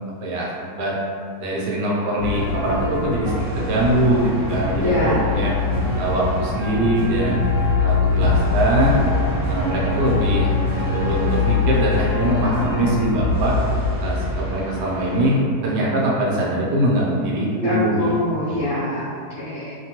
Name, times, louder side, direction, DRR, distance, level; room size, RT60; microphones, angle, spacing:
voice 1, 0.2-1.0 1.4-5.5 6.0-7.4 7.8-9.0 9.4-13.5 14.0-18.2 18.5-18.7, right 1 dB, 75° right, -4 dB, 1.1 m, -22 dB
sound 1, 2.2-15.3, left 3 dB, 40° right, 1.1 m, -23 dB
voice 2, 4.8-5.2 17.5-19.8, left 1 dB, 85° left, -9 dB, 0.6 m, -24 dB
Wind instrument woodwind instrument, 6.5-12.7, left 2 dB, 65° left, 1.0 m, -36 dB
3.0 x 2.2 x 2.8 m, 2.2 s
omnidirectional pair, 2.0 m